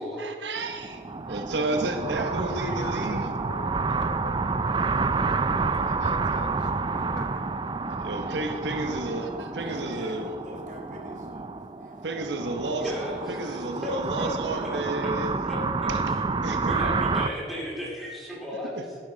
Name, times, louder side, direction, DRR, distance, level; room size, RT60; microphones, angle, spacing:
voice 1, 0.2-1.0 1.3-3.3 8.0-9.3 9.6-10.3 12.0-12.8 13.3-15.3 15.9-16.0 16.4-16.7 18.8-18.9, right 2 dB, 85° right, 5 dB, 1.0 m, -31 dB
sound 1, 0.6-17.3, right 4 dB, 25° right, 0.3 m, -29 dB
voice 2, 2.5-4.9 5.6-7.4, left 3 dB, 90° left, 6 dB, 1.1 m, -45 dB
voice 3, 9.3-12.5 13.6-13.8 14.2-14.6 14.8-14.9, equal, 45° right, -1 dB, 2.2 m, -47 dB
voice 4, 12.8-14.3 14.6-15.1 15.4-16.2 16.7-18.9, left 1 dB, ahead, -5 dB, 2.5 m, -35 dB
10.5 x 10.5 x 4.0 m, 2.4 s
head